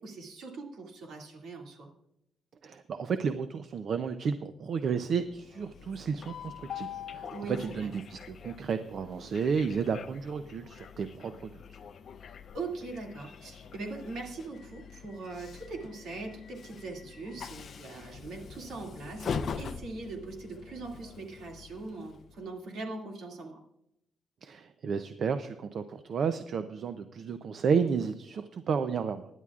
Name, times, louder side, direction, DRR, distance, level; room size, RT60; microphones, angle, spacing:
voice 1, 0.0-1.9 7.3-7.9 12.5-23.6, right 3 dB, 65° right, 1 dB, 2.3 m, -41 dB
voice 2, 2.6-7.3 7.6-11.8 24.4-29.3, right 6 dB, 45° right, 10 dB, 0.5 m, -32 dB
Train, 5.2-22.5, left 6 dB, 45° left, 0.6 m, -43 dB
24.5 x 11.0 x 2.4 m, 0.80 s
cardioid pair, 175°, 0 cm